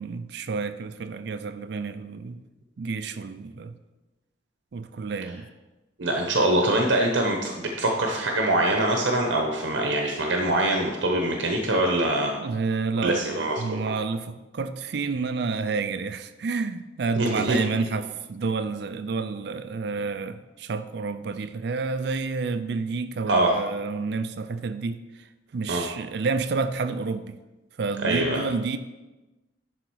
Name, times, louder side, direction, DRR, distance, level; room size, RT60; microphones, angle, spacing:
voice 1, 0.0-2.4 2.8-3.7 4.7-5.5 12.3-27.4 27.8-28.8, right 4 dB, 60° right, 11 dB, 0.4 m, -29 dB
voice 2, 6.0-12.3 13.0-13.8 17.2-17.6 23.3-23.6 25.7-25.8 28.0-28.4, right 1 dB, 85° right, 2 dB, 0.9 m, -24 dB
11.0 x 3.9 x 4.7 m, 1.1 s
head